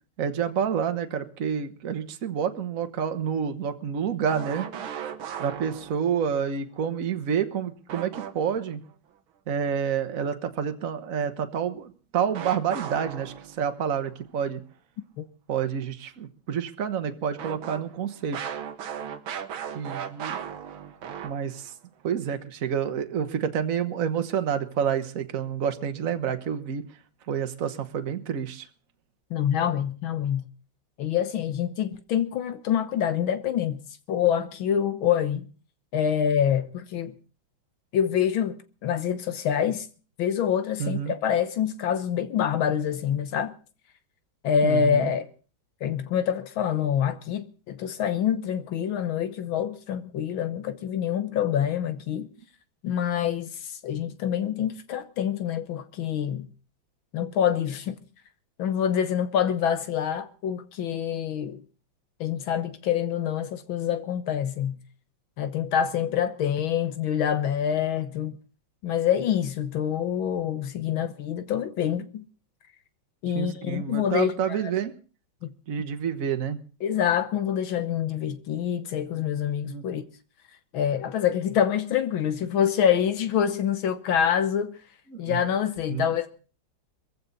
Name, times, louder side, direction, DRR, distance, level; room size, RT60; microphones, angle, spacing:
voice 1, 0.2-4.7 5.4-8.8 9.5-14.6 15.5-18.4 19.7-20.4 21.2-21.7 22.0-26.8 27.3-28.7 40.8-41.1 44.6-45.1 70.9-71.0 73.3-74.9 75.7-76.6 79.7-79.8 85.1-85.4 85.9-86.1, right 8 dB, 45° right, 1.5 m, -28 dB
sound 1, 4.3-6.2 7.9-8.7 12.3-13.8 17.4-21.7, right 8 dB, 80° right, 1.9 m, -36 dB
voice 2, 29.3-30.5 31.0-33.8 34.1-35.5 35.9-37.1 37.9-38.6 38.8-39.9 40.2-43.5 44.4-45.3 45.8-52.3 52.8-56.5 57.1-58.0 58.6-61.6 62.2-64.8 65.4-68.4 68.8-72.2 73.2-74.7 76.8-80.0 80.7-84.8 85.2-86.3, left 9 dB, 80° left, 1.8 m, -26 dB
21.5 x 15.5 x 4.1 m
omnidirectional pair, 2.2 m